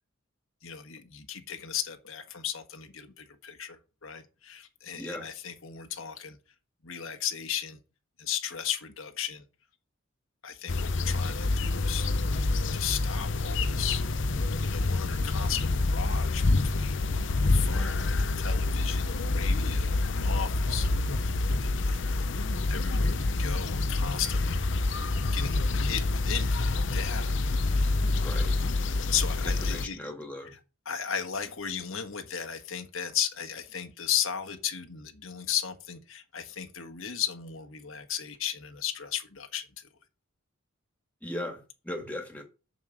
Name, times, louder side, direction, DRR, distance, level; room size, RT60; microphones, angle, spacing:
voice 1, 0.6-6.4 6.8-7.8 8.2-9.4 10.4-12.1 12.7-14.0 14.6-24.6 25.3-28.3 29.1-30.0 30.8-39.9, left 9 dB, 85° left, 1.6 m, -36 dB
voice 2, 4.9-5.3 17.7-18.1 28.1-28.6 29.4-30.5 41.2-42.4, left 1 dB, 5° left, 2.2 m, -38 dB
sound 1, 10.7-29.8, left 2 dB, 60° left, 0.8 m, -27 dB
7.4 x 6.7 x 7.8 m
head